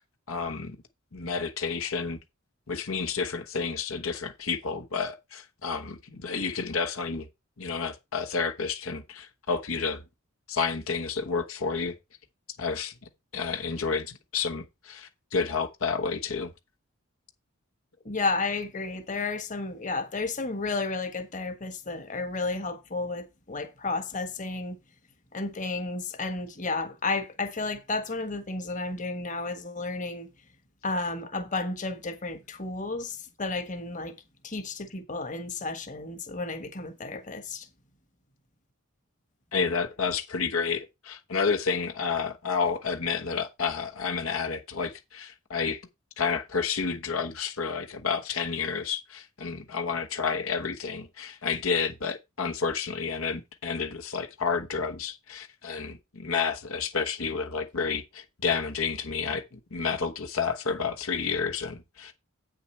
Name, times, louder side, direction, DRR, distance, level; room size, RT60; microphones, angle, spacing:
voice 1, 0.3-0.8 1.1-2.2 2.7-7.3 7.6-10.0 10.5-12.0 12.6-12.9 13.3-16.5 39.5-45.8 46.2-62.1, left 5 dB, 75° left, 1.2 m, -30 dB
voice 2, 18.0-24.8 25.3-30.3 30.8-34.1 34.4-37.7, left 3 dB, 35° left, 1.4 m, -32 dB
8.8 x 6.7 x 4.4 m
head